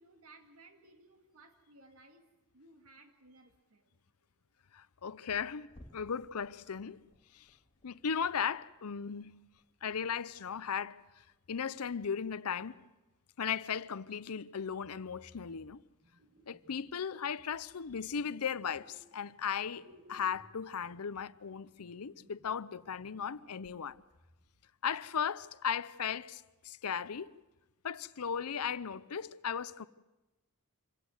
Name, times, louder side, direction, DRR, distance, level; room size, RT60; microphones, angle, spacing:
voice 1, 0.0-2.3 2.5-4.0 5.3-5.5, right 2 dB, 70° right, 2.2 m, -59 dB
voice 2, 4.7-5.7 5.9-7.0 7.3-7.5 7.8-9.4 9.8-12.8 13.4-15.8 16.5-24.0 24.8-27.3 27.8-29.9, left 7 dB, 85° left, 0.7 m, -37 dB
sound 1, 5.7-12.3 12.7-13.0 13.4-13.5 14.1-14.2, equal, 25° left, 2.4 m, -64 dB
sound 2, 14.6-17.0 17.5-19.5 19.8-24.6, equal, 45° right, 2.1 m, -64 dB
26.0 x 16.5 x 7.9 m
head